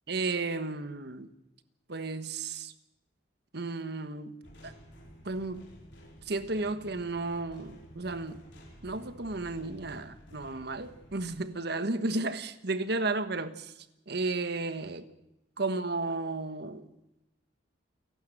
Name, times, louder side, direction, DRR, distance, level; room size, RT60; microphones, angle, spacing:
voice 1, 0.1-1.3 1.9-2.7 3.5-4.3 4.6-4.7 5.2-5.7 6.3-8.4 8.8-13.7 14.1-15.1 15.6-16.9, right 3 dB, 55° right, 1.3 m, -33 dB
sound 1, 4.4-11.4, equal, 65° left, 4.8 m, -52 dB
29.0 x 11.5 x 7.9 m
head